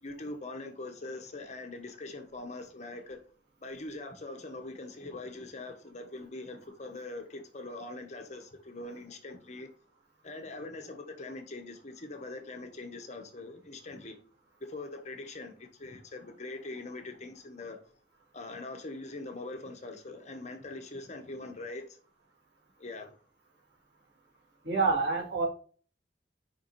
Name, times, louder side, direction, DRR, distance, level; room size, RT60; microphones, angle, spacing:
voice 1, 0.0-3.2 3.6-9.7 10.2-14.2 14.6-17.8 18.3-22.0 22.8-23.2, left 2 dB, 40° left, 1.1 m, -42 dB
voice 2, 24.6-25.4, right 4 dB, 85° right, 2.7 m, -27 dB
5.2 x 4.9 x 4.1 m
head